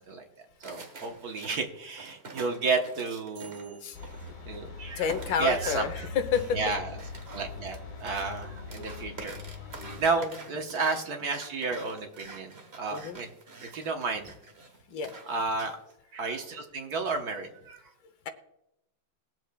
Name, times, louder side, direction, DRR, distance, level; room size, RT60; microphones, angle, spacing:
sound 1, 0.6-4.7 5.1-15.9, right 3 dB, 40° right, 1.2 m, -48 dB
voice 1, 0.6-3.8 4.4-5.1 5.4-6.1 6.5-6.8 7.3-9.4 10.0-13.3 13.6-14.3 15.3-15.8 16.1-17.8, right 4 dB, 55° right, 4 dB, 1.4 m, -32 dB
sound 2, 3.9-10.1, left 4 dB, 45° left, 1.8 m, -41 dB
voice 2, 5.0-6.6 10.2-10.4 12.9-13.2 14.9-15.1, left 7 dB, 80° left, 9 dB, 1.6 m, -29 dB
sound 3, 8.4-10.2 10.6-12.2 12.6-12.9, left 1 dB, 30° left, 4.5 m, -51 dB
21.5 x 7.7 x 2.3 m, 0.84 s
omnidirectional pair, 2.1 m